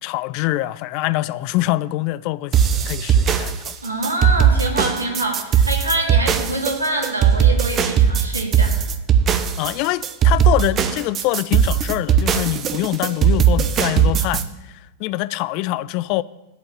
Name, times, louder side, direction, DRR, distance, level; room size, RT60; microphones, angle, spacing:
voice 1, 0.0-3.8 9.6-16.2, left 17 dB, 45° left, 0.4 m, -24 dB
sound 1, 2.5-14.4, right 8 dB, 30° right, 0.9 m, -18 dB
voice 2, 3.8-8.8, right 1 dB, 80° right, 2.2 m, -25 dB
11.5 x 5.2 x 8.7 m
figure-of-eight pair, 90°, 0 cm